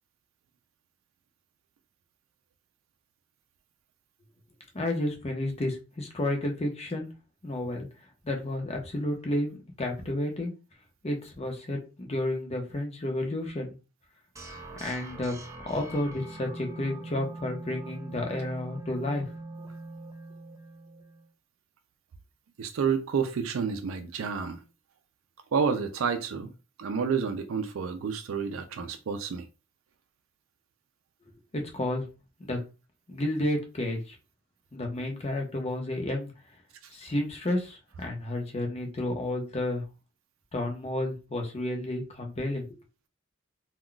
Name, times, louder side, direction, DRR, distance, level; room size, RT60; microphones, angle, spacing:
voice 1, 4.7-7.1 7.4-7.9 8.2-9.5 9.8-10.5 11.0-13.8 14.8-15.4 15.7-19.3 31.5-32.0 32.4-32.6 33.1-34.2 34.7-36.3 36.9-39.8 40.5-42.8, left 1 dB, 30° left, 0.7 m, -31 dB
sound 1, 14.3-21.3, right 2 dB, 15° right, 0.5 m, -43 dB
voice 2, 22.6-24.6 25.5-26.5 26.8-29.5 36.8-36.9, right 6 dB, 75° right, 0.4 m, -29 dB
2.2 x 2.2 x 3.7 m
head